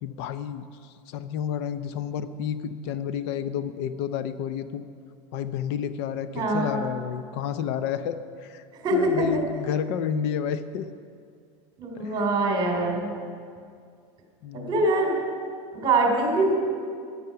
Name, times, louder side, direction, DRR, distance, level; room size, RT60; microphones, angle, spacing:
voice 1, 0.0-4.8 5.3-8.6 8.9-10.9 12.0-12.4 14.4-14.9, left 8 dB, 60° left, 12 dB, 0.6 m, -31 dB
voice 2, 6.3-6.7 8.7-9.4 11.8-13.1 14.5-15.2 15.7-16.5, right 2 dB, 25° right, 1 dB, 3.2 m, -24 dB
13.5 x 11.0 x 5.8 m, 2.2 s
supercardioid pair, 140°, 16 cm